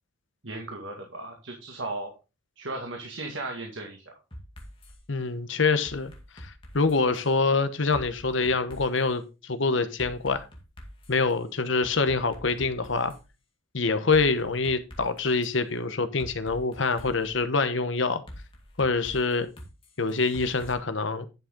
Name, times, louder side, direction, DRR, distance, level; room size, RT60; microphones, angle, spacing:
voice 1, 0.4-2.1 2.6-4.1, right 2 dB, 75° right, 2.0 m, -36 dB
sound 1, 4.3-5.0 5.8-7.3 7.9-9.1 10.0-11.3 11.8-13.2 14.1-15.5 16.2-17.4 18.3-20.7, equal, 25° left, 2.0 m, -45 dB
voice 2, 5.1-6.1 6.4-10.5 11.1-13.1 13.7-18.2 18.8-19.5 20.0-21.3, left 4 dB, 70° left, 1.1 m, -25 dB
10.5 x 6.5 x 3.7 m
head